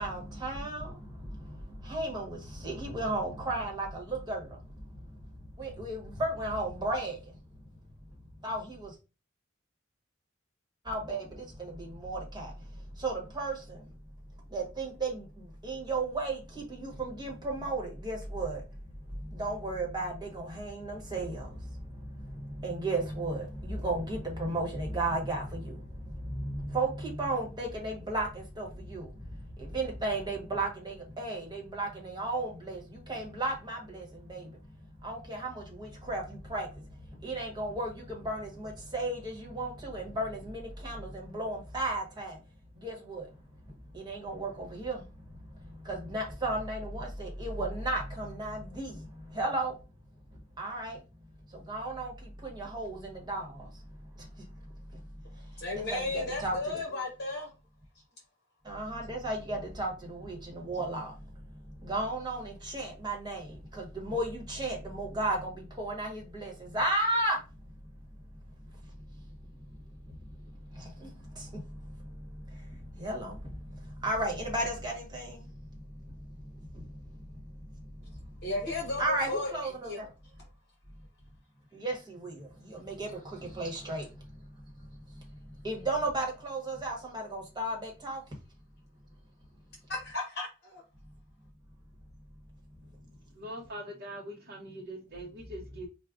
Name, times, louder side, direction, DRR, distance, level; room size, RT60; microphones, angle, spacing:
voice 1, 0.0-5.2 5.5-7.4 8.4-8.9 10.8-13.9 14.5-42.4 42.7-43.3 43.9-49.8 50.3-51.0 51.5-55.0 55.3-56.8 58.6-67.4 68.7-69.2 69.7-75.8 76.2-78.4 79.0-80.1 81.7-88.2, right 2 dB, 20° right, 1.1 m, -35 dB
voice 2, 55.6-57.5 78.4-79.5 79.8-80.0 89.9-90.8, left 2 dB, 55° left, 1.1 m, -34 dB
voice 3, 93.3-95.9, equal, 50° right, 0.7 m, -42 dB
4.9 x 2.1 x 2.4 m
head